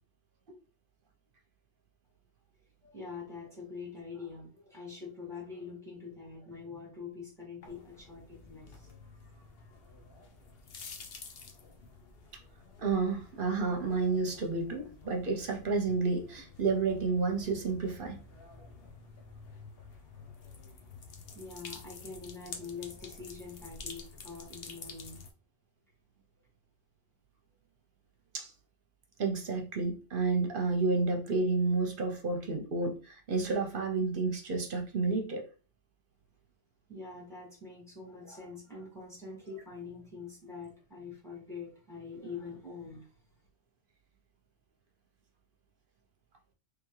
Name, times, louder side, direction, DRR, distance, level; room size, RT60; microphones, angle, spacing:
voice 1, 2.8-8.9 21.3-25.2 36.9-43.2, left 4 dB, ahead, -4 dB, 1.9 m, -44 dB
sound 1, 7.6-25.3, left 5 dB, 60° left, 1.0 m, -50 dB
voice 2, 12.8-18.2 28.3-28.5 29.2-35.4, right 4 dB, 55° right, 3 dB, 0.8 m, -30 dB
3.5 x 3.3 x 3.1 m, 0.35 s
omnidirectional pair, 1.2 m